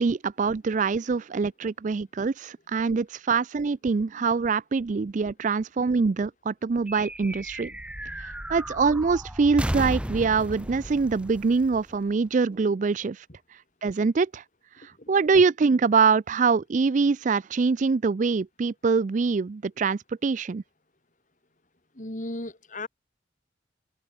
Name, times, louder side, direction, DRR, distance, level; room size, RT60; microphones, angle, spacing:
voice 1, 0.0-7.7 8.2-13.2 13.8-14.4 15.1-20.6, right 4 dB, 40° right, 0.4 m, -24 dB
sound 1, 6.9-12.6, right 1 dB, 5° right, 0.8 m, -35 dB
voice 2, 14.8-15.1 21.9-22.9, left 1 dB, 45° left, 3.4 m, -36 dB
head